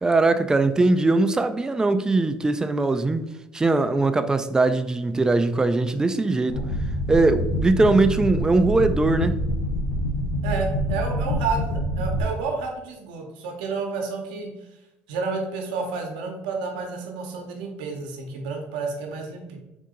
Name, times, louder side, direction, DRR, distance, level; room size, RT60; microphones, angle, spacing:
voice 1, 0.0-3.3 3.5-6.6 7.1-9.4, right 3 dB, 15° right, 0.3 m, -21 dB
sound 1, 6.5-12.2, equal, 75° left, 0.7 m, -26 dB
voice 2, 7.8-8.2 10.4-14.5 15.1-19.6, right 4 dB, 90° right, 0.8 m, -30 dB
3.8 x 2.7 x 3.7 m
supercardioid pair, 85°, 5 cm